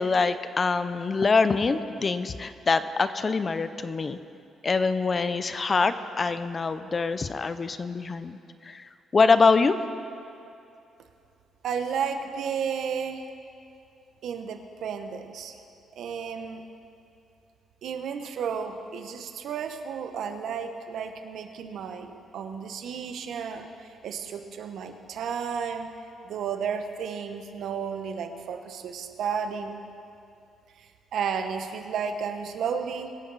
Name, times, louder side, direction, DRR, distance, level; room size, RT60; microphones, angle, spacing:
voice 1, 0.0-4.2 4.6-9.7, left 4 dB, 35° left, 12 dB, 0.6 m, -24 dB
voice 2, 11.6-13.2 14.2-15.5 15.9-16.6 17.8-25.9 26.2-29.8 30.8-33.1, right 6 dB, 70° right, 6 dB, 1.0 m, -33 dB
23.0 x 8.6 x 4.1 m, 2.6 s
cardioid pair, 90°, 0 cm